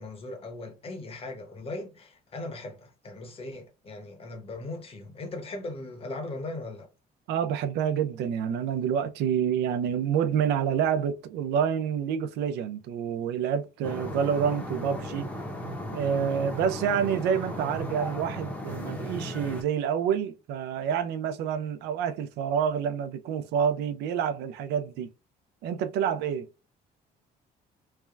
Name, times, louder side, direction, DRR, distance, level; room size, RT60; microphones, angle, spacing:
voice 1, 0.0-6.9, left 2 dB, 35° left, 1.0 m, -39 dB
voice 2, 7.3-15.3 15.9-25.1 25.6-26.5, right 8 dB, 80° right, 0.4 m, -28 dB
sound 1, 13.8-19.6, equal, 10° left, 0.7 m, -36 dB
3.3 x 2.2 x 2.3 m
cardioid pair, 110°, 17 cm